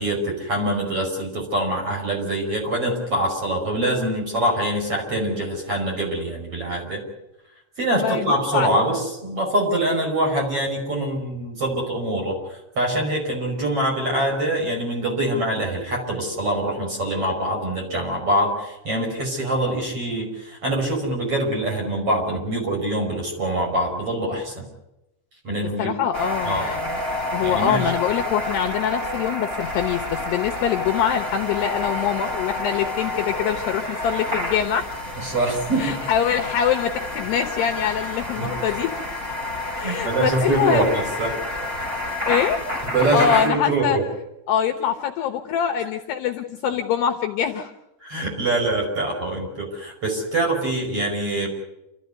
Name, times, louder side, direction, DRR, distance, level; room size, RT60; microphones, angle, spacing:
voice 1, 0.0-7.0 7.8-24.6 25.4-26.0 26.4-26.7 27.4-27.9 35.2-36.0 38.4-38.5 39.8-41.4 42.8-44.0 48.0-51.5, right 1 dB, 30° right, 1 dB, 6.0 m, -24 dB
voice 2, 7.9-8.7 25.8-27.0 27.3-34.9 35.8-38.9 39.7-40.8 42.2-42.6 43.0-44.0 44.5-47.7, left 8 dB, 70° left, 4 dB, 2.8 m, -24 dB
sound 1, 26.1-43.5, left 1 dB, 10° right, 4.5 m, -29 dB
28.5 x 14.0 x 9.5 m, 0.91 s
omnidirectional pair, 5.5 m